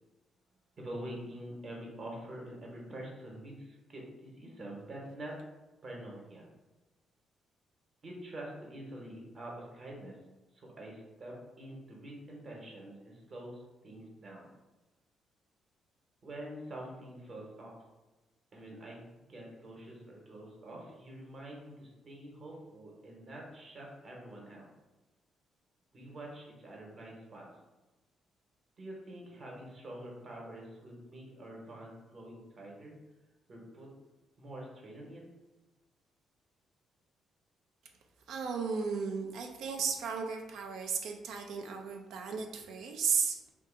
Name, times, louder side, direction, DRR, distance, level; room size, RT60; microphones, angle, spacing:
voice 1, 0.8-5.4 5.8-6.5 8.0-10.2 10.5-14.5 16.2-17.8 18.5-24.7 25.9-27.4 28.8-33.0 33.5-33.9 34.4-35.2, right 1 dB, 45° right, -2 dB, 1.0 m, -46 dB
voice 2, 38.3-43.4, right 6 dB, 80° right, 3 dB, 0.4 m, -34 dB
2.6 x 2.3 x 3.7 m, 1.1 s
cardioid pair, 90°, 0 cm